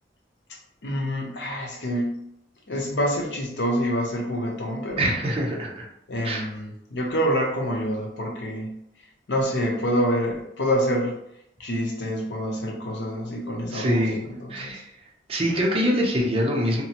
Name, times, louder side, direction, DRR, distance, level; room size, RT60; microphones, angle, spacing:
voice 1, 0.8-2.2 2.7-5.1 6.1-8.7 9.3-11.2 11.6-14.8, equal, 85° left, -1 dB, 0.7 m, -27 dB
voice 2, 5.0-5.9 6.2-6.5 13.6-14.2 14.5-14.9 15.3-16.8, equal, 35° right, -2 dB, 0.5 m, -24 dB
2.9 x 2.0 x 2.9 m, 0.76 s
head